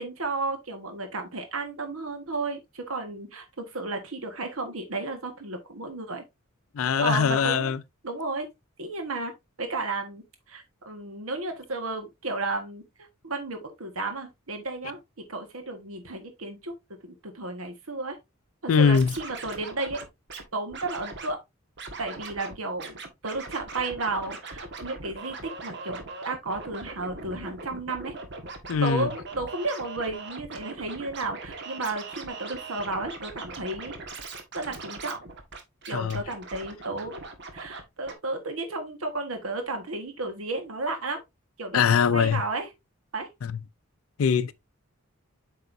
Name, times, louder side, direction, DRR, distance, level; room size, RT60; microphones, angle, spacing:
voice 1, 0.0-6.2 7.0-7.7 8.0-8.5 8.8-9.3 9.6-12.8 13.2-15.0 15.3-16.7 17.0-18.2 18.6-20.0 20.5-21.4 22.0-23.0 23.2-28.1 28.8-33.9 34.5-35.2 35.9-37.2 37.5-41.2 41.6-41.8 42.1-42.7 43.1-43.3, right 3 dB, 85° right, 1.4 m, -33 dB
voice 2, 6.8-7.8 18.7-19.1 28.7-29.1 35.9-36.2 41.7-42.4 44.2-44.5, left 6 dB, 75° left, 0.4 m, -22 dB
Scratching (performance technique), 18.7-20.4 20.7-21.3 21.8-22.5 22.8-37.8 38.1-38.2, right 3 dB, 60° right, 1.6 m, -40 dB
8.0 x 5.4 x 2.6 m
head